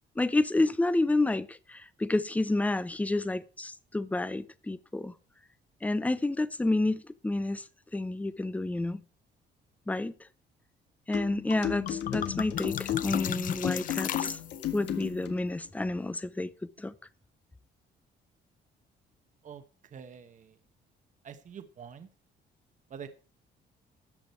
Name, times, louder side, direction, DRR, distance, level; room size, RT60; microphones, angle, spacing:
voice 1, 0.2-5.1 5.8-7.7 7.9-9.0 9.9-10.1 11.1-14.4 14.7-16.9, left 2 dB, 10° left, 0.6 m, -29 dB
sound 1, 11.1-15.4, left 10 dB, 80° left, 1.6 m, -34 dB
sound 2, 11.5-11.6 11.9-14.9, left 10 dB, 50° left, 0.5 m, -35 dB
voice 2, 19.9-20.5 21.2-22.1 22.9-23.1, right 7 dB, 45° right, 1.2 m, -45 dB
13.5 x 8.7 x 4.4 m
cardioid pair, 125°, 18 cm